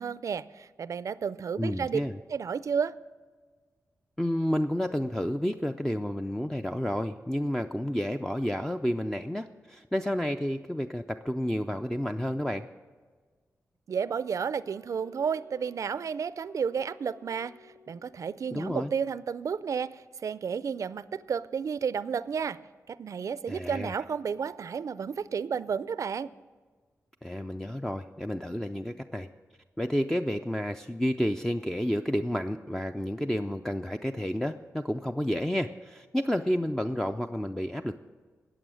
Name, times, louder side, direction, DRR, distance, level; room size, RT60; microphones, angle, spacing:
voice 1, 0.0-2.0 2.3-2.9 13.9-22.6 22.9-26.3, right 6 dB, 65° right, 17 dB, 0.4 m, -32 dB
voice 2, 1.6-2.2 4.2-12.7 18.5-18.9 23.5-24.0 27.2-29.3 29.8-38.0, equal, 5° left, 6 dB, 0.4 m, -30 dB
Wind instrument woodwind instrument, 14.0-18.5, left 4 dB, 70° left, 1.6 m, -57 dB
19.0 x 7.0 x 6.3 m, 1.5 s
cardioid pair, 70°, 6 cm